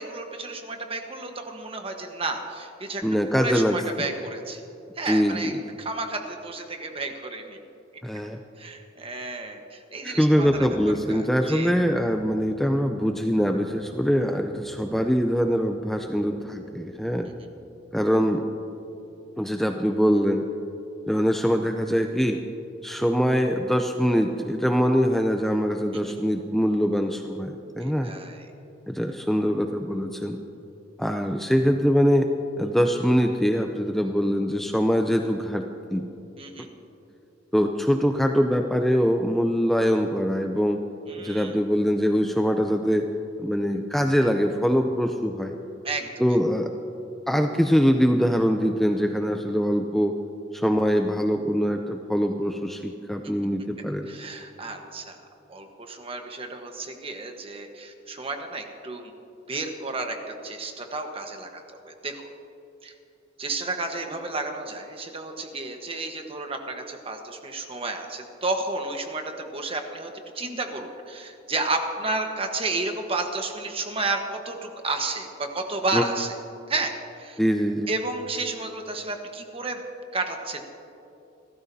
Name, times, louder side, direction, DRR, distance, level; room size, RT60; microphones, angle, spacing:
voice 1, 0.0-3.0 3.3-4.6 5.0-5.5 5.8-7.6 8.6-10.7 11.1-11.7 27.8-28.5 36.4-36.7 41.1-41.5 45.8-46.1 54.1-55.2 55.5-59.1 59.5-60.2 60.4-62.3 62.8-62.9 63.4-76.3 76.7-76.9 77.2-77.4 77.9-79.8 80.1-80.6, right 3 dB, 30° right, 4 dB, 1.3 m, -32 dB
voice 2, 3.0-3.8 5.0-5.6 8.0-8.4 10.0-17.3 17.9-18.5 19.4-20.5 21.1-22.4 22.8-28.1 28.9-30.4 31.0-32.3 32.6-36.1 37.5-40.8 41.2-43.1 43.4-45.6 46.2-46.7 47.3-50.2 50.5-54.1 75.9-76.0 77.4-77.9, equal, ahead, 4 dB, 0.5 m, -23 dB
Brass instrument, 10.3-17.8, left 1 dB, 15° right, 1.2 m, -47 dB
28.0 x 13.5 x 2.8 m, 2.8 s
head